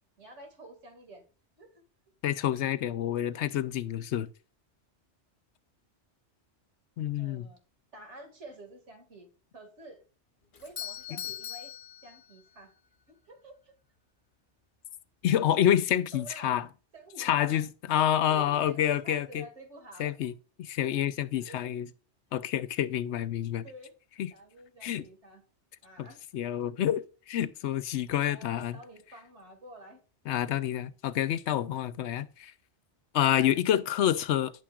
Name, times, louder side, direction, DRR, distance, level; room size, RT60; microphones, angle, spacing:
voice 1, 0.2-1.2 1.6-1.8 7.2-7.6 7.9-9.3 9.5-10.0 10.6-11.7 12.0-12.7 13.1-13.7 16.1-16.6 16.9-17.7 18.3-20.3 20.9-21.1 21.3-21.6 23.6-24.0 24.3-25.4 25.8-26.2 26.5-26.7 28.3-30.0 30.6-30.7, right 1 dB, 80° right, 2.6 m, -50 dB
voice 2, 2.2-4.3 7.0-7.5 11.1-11.2 15.2-16.7 17.2-19.4 20.0-20.3 20.7-21.9 22.3-23.6 24.2-24.3 24.8-25.1 26.0-26.1 26.3-28.8 30.3-32.5 33.1-34.5, left 11 dB, 80° left, 0.9 m, -28 dB
Doorbell, 10.5-12.7, left 10 dB, 50° left, 1.0 m, -41 dB
10.5 x 8.7 x 2.4 m
omnidirectional pair, 1.2 m